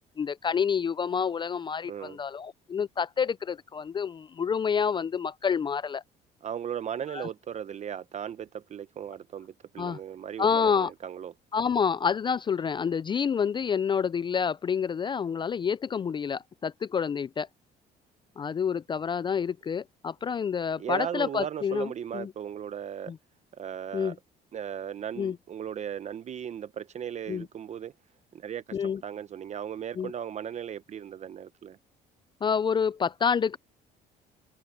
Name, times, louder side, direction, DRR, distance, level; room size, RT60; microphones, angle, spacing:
voice 1, 0.2-6.0 7.1-7.3 9.8-10.0 10.4-10.9 11.5-17.5 18.4-22.3 23.1-23.2 23.9-24.2 25.2-25.4 27.3-27.5 28.7-29.0 30.0-30.1 32.4-33.6, left 6 dB, 30° left, 0.4 m, -28 dB
voice 2, 6.4-11.3 20.8-23.1 23.5-24.1 24.5-27.9 28.3-28.8 29.0-31.8, right 9 dB, 45° right, 0.8 m, -37 dB
cardioid pair, 110°, 17 cm